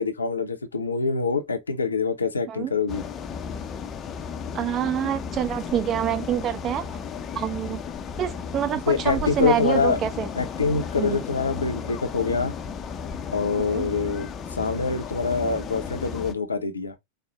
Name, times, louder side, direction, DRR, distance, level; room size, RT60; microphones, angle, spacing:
voice 1, 0.0-3.0 8.9-10.0 10.4-12.5 13.3-16.9, left 5 dB, 75° left, 0.6 m, -25 dB
sound 1, 2.9-16.3, left 6 dB, 25° left, 0.5 m, -34 dB
voice 2, 4.5-7.0 7.3-7.8 8.2-10.3 11.0-11.2 13.7-13.9, right 10 dB, 30° right, 0.6 m, -26 dB
4.4 x 2.1 x 3.4 m
figure-of-eight pair, 90°, 0 cm